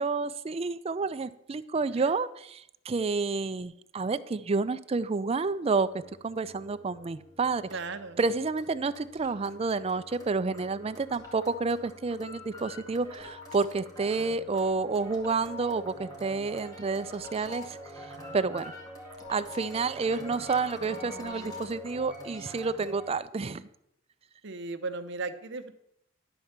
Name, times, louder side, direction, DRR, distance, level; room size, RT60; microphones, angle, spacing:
voice 1, 0.0-5.9 6.2-7.7 8.2-17.8 18.3-18.7 19.3-23.7, right 4 dB, 30° right, 13 dB, 0.4 m, -29 dB
sound 1, 5.8-23.2, left 1 dB, 20° left, 2.0 m, -45 dB
voice 2, 7.7-8.2 24.4-25.7, right 3 dB, 65° right, 8 dB, 0.8 m, -36 dB
11.0 x 4.5 x 7.2 m, 0.77 s
head